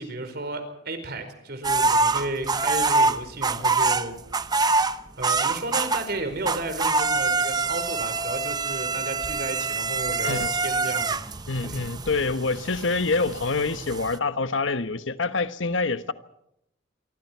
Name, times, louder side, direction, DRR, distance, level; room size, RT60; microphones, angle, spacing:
voice 1, 0.0-4.2 4.5-4.7 5.2-11.1 11.6-11.8, right 2 dB, 55° right, 4.7 m, -33 dB
sound 1, 1.6-6.2 6.5-14.2, right 3 dB, 20° right, 0.8 m, -25 dB
voice 2, 11.5-16.1, left 3 dB, 75° left, 1.3 m, -26 dB
27.5 x 25.0 x 4.6 m
head